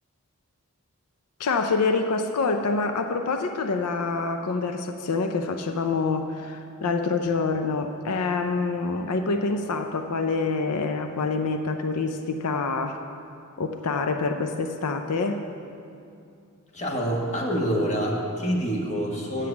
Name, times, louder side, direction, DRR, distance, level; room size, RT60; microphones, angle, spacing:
voice 1, 1.4-13.0 13.6-15.4, left 4 dB, 90° left, 6 dB, 0.5 m, -26 dB
voice 2, 16.7-19.5, equal, 30° left, -1 dB, 1.4 m, -26 dB
8.2 x 7.7 x 7.2 m, 2.5 s
head